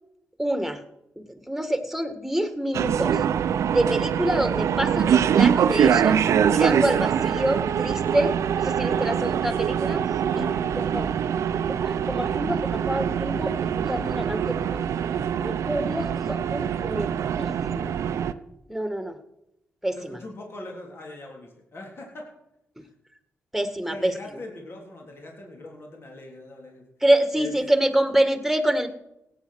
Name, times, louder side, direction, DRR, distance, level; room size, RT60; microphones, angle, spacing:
voice 1, 0.4-0.8 1.2-3.2 3.7-6.2 6.5-10.0 10.4-10.5 10.8-11.1 11.5-14.9 15.4-17.9 18.7-19.2 19.8-20.2 23.5-24.1 27.0-28.9, right 1 dB, 5° right, 9 dB, 1.8 m, -26 dB
sound 1, 2.7-18.3, right 8 dB, 75° right, 0.6 m, -24 dB
voice 2, 8.9-9.3 10.2-11.1 20.0-22.3 22.8-22.9 23.9-26.9 27.3-27.5, left 2 dB, 50° left, 0 dB, 3.4 m, -41 dB
17.0 x 8.4 x 6.4 m, 0.84 s
cardioid pair, 55°, 5 cm